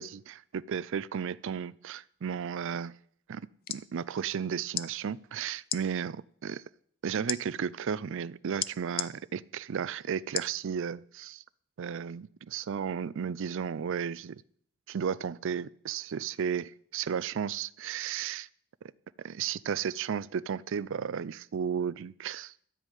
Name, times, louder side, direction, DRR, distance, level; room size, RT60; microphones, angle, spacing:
voice 1, 0.0-2.9 3.3-6.6 7.0-11.4 11.8-14.4 14.9-18.5 19.2-22.5, right 7 dB, 60° right, 19 dB, 0.4 m, -34 dB
sound 1, 3.4-3.9 4.7-4.9 5.6-5.8 7.3-7.4 8.6-9.1 10.3-10.6 11.1-11.2, left 12 dB, 45° left, 0.5 m, -33 dB
13.0 x 5.4 x 9.1 m, 0.63 s
head